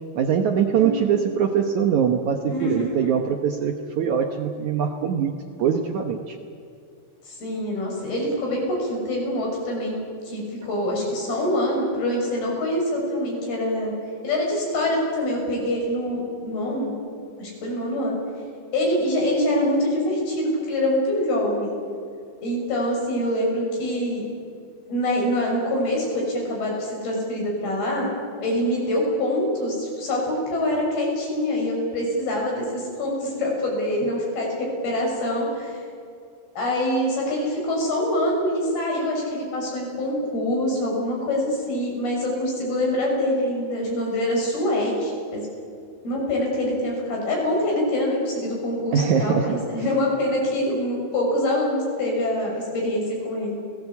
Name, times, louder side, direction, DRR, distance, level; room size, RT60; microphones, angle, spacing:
voice 1, 0.2-6.4 48.9-49.6, right 7 dB, 65° right, 5 dB, 2.0 m, -23 dB
voice 2, 0.8-1.2 2.5-3.1 7.3-10.0 10.3-13.9 14.2-16.9 17.4-18.2 18.7-21.8 22.4-24.2 24.9-28.1 28.4-35.8 36.6-45.4 46.0-53.6, left 1 dB, 70° left, -1 dB, 8.4 m, -25 dB
29.5 x 18.5 x 8.4 m, 2.4 s
omnidirectional pair, 4.6 m